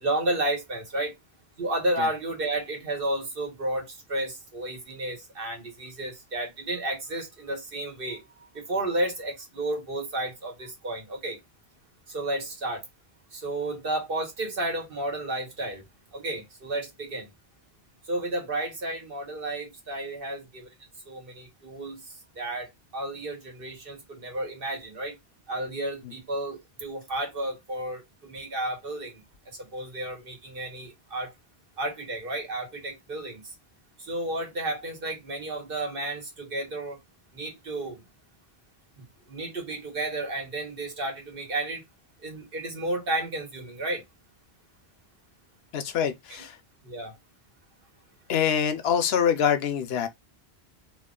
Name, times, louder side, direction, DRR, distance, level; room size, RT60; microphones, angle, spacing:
voice 1, 0.0-1.1 1.6-8.2 8.5-11.4 12.1-12.8 13.3-15.8 16.1-17.3 18.1-20.7 21.1-22.0 22.4-22.7 22.9-25.1 25.5-29.1 29.7-31.3 31.8-33.4 34.0-37.0 37.3-38.0 39.3-41.8 42.2-44.0 46.3-46.4 46.8-47.1, right 1 dB, 60° right, 1.4 m, -32 dB
voice 2, 45.7-46.5 48.3-50.1, left 8 dB, 75° left, 0.8 m, -25 dB
2.9 x 2.4 x 3.6 m
omnidirectional pair, 1.1 m